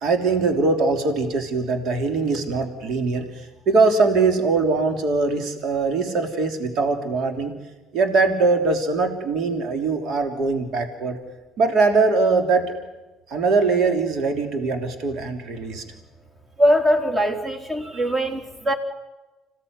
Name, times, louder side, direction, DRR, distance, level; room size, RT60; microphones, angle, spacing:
voice 1, 0.0-3.3 3.6-7.5 7.9-11.2 11.6-12.6 13.3-15.8, right 3 dB, 65° right, 6 dB, 3.2 m, -21 dB
voice 2, 16.6-18.7, equal, 20° right, 5 dB, 4.1 m, -21 dB
26.5 x 17.0 x 9.6 m, 1.2 s
supercardioid pair, 75°, 0 cm